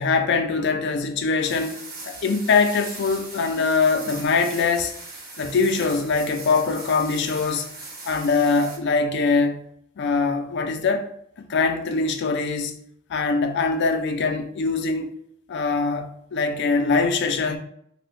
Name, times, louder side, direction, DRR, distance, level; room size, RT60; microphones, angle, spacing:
voice 1, 0.0-5.0 5.4-7.7 8.1-9.6 10.0-11.1 11.5-12.8 13.1-15.1 15.5-17.6, left 4 dB, 60° left, 0.4 m, -23 dB
sound 1, 1.4-8.8, right 2 dB, 50° right, 0.8 m, -39 dB
2.7 x 2.1 x 3.8 m
head